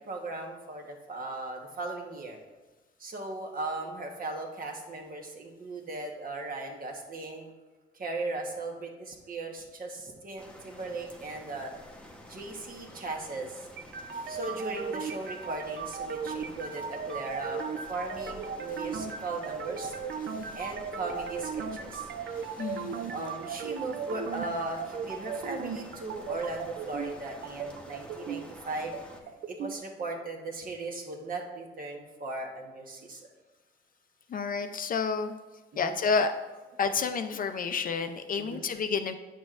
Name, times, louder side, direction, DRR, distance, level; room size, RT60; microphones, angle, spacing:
voice 1, 0.1-2.4 3.0-7.5 7.9-11.7 12.3-13.7 14.3-19.9 20.5-22.1 23.1-28.9 29.5-33.2 35.7-36.0 38.4-38.6, right 2 dB, 45° right, 2 dB, 1.2 m, -37 dB
sound 1, 10.4-29.2, equal, 5° left, 0.9 m, -49 dB
sound 2, 13.8-29.8, right 6 dB, 65° right, 0.5 m, -37 dB
voice 2, 22.6-23.0 34.3-35.3 35.8-36.3 36.8-39.1, left 5 dB, 45° left, 8 dB, 0.5 m, -29 dB
9.0 x 6.2 x 2.5 m, 1.2 s
cardioid pair, 90°, 20 cm